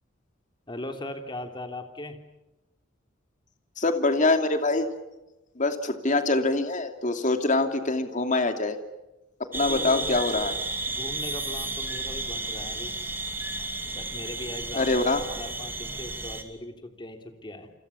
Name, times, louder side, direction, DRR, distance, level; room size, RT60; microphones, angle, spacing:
voice 1, 0.7-2.2 9.5-10.2 10.9-12.9 13.9-17.7, left 1 dB, 25° left, 5 dB, 3.3 m, -39 dB
voice 2, 3.8-4.9 5.6-8.8 9.5-10.5 14.7-15.2, left 2 dB, 40° left, 6 dB, 2.8 m, -24 dB
sound 1, 9.5-16.4, right 2 dB, 10° right, 2.8 m, -33 dB
29.5 x 25.5 x 7.1 m, 1.0 s
head